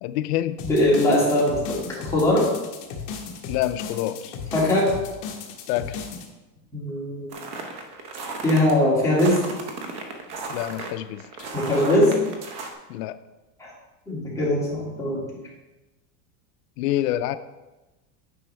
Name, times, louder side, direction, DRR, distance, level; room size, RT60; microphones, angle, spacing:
voice 1, 0.0-0.6 3.5-4.4 5.7-6.0 10.5-11.5 12.9-13.2 16.8-17.4, left 13 dB, 70° left, 10 dB, 0.5 m, -27 dB
sound 1, 0.6-6.3, left 6 dB, 50° left, 1.3 m, -35 dB
voice 2, 0.6-2.5 4.5-4.9 6.7-7.3 8.4-9.4 11.5-12.1 13.6-13.7 14.1-15.2, left 1 dB, 5° left, -7 dB, 2.2 m, -21 dB
sound 2, 7.3-8.7 9.2-12.7, right 3 dB, 30° right, 0.8 m, -34 dB
9.5 x 5.4 x 3.3 m, 1.1 s
supercardioid pair, 160°, 49 cm